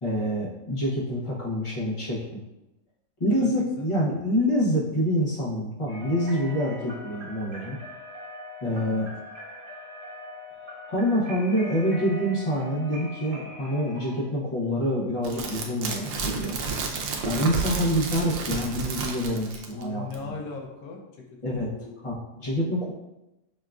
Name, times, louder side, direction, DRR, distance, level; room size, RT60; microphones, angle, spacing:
voice 1, 0.0-2.4 3.2-7.8 8.6-9.1 10.9-16.6 17.2-20.4 21.4-21.7 22.0-22.9, equal, 40° left, -6 dB, 0.4 m, -26 dB
voice 2, 3.8-4.2 8.7-9.1 19.7-21.0 21.5-22.1 22.4-22.5, left 4 dB, 80° left, 1 dB, 1.2 m, -40 dB
sound 1, 5.9-14.2, left 2 dB, 55° right, 0.6 m, -42 dB
sound 2, 15.2-19.8 20.1-20.2, right 4 dB, 85° right, 1.2 m, -31 dB
6.3 x 2.2 x 2.4 m, 0.98 s
omnidirectional pair, 1.7 m